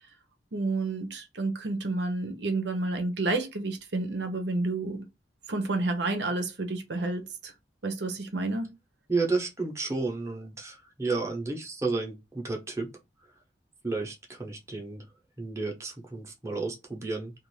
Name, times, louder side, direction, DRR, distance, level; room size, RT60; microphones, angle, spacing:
voice 1, 0.5-5.0 5.5-7.5 7.8-8.7, right 2 dB, 75° right, 0.8 m, -30 dB
voice 2, 9.1-12.9 13.8-15.1 15.4-17.3, right 3 dB, 15° right, 0.8 m, -32 dB
2.5 x 2.5 x 3.1 m
head